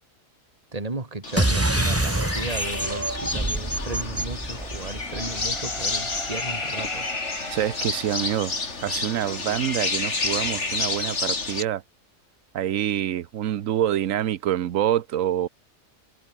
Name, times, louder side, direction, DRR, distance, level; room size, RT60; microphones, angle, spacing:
voice 1, 0.7-7.1, right 3 dB, 25° right, 2.6 m, -35 dB
sound 1, 1.2-11.6, left 3 dB, 55° left, 3.1 m, -30 dB
sound 2, 1.4-6.3, right 1 dB, 10° right, 1.3 m, -27 dB
sound 3, 4.6-9.3, left 1 dB, 20° left, 6.4 m, -39 dB
voice 2, 7.5-8.5 8.8-11.8 12.5-15.5, right 11 dB, 75° right, 1.2 m, -26 dB
omnidirectional pair, 1.4 m